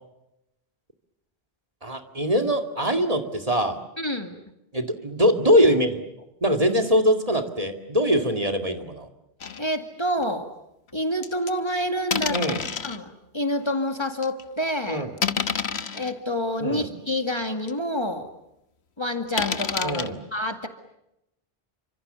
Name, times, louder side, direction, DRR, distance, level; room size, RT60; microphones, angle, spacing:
voice 1, 1.8-3.8 4.7-6.0 6.4-9.1 12.3-12.6 14.9-15.1 16.6-16.9 19.8-20.2, equal, 35° right, 5 dB, 2.5 m, -22 dB
voice 2, 4.0-4.4 9.6-10.5 10.9-12.4 12.8-15.1 15.9-18.3 19.0-20.7, equal, 25° left, 6 dB, 2.2 m, -28 dB
sound 1, 9.4-9.6 10.2-10.3 11.2-11.5 12.1-13.0 13.6-13.7 14.2-14.4 15.2-16.1 16.8-16.9 17.4-17.5 17.7-17.8 19.4-20.1, left 6 dB, 85° left, 1.5 m, -28 dB
30.0 x 26.5 x 6.9 m, 0.85 s
omnidirectional pair, 1.1 m